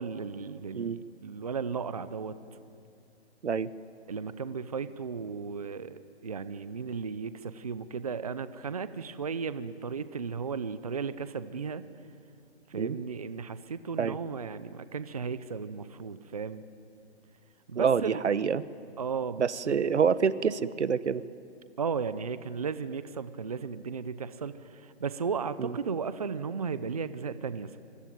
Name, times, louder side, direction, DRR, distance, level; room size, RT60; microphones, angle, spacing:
voice 1, 0.0-2.4 4.1-11.9 12.7-16.6 17.7-18.2 19.0-19.8 21.8-27.8, right 5 dB, 35° right, 13 dB, 0.7 m, -35 dB
voice 2, 17.7-18.6 19.4-21.2 25.6-25.8, right 6 dB, 85° right, 16 dB, 1.2 m, -27 dB
25.0 x 25.0 x 9.3 m, 2.4 s
hypercardioid pair, 175°, 34 cm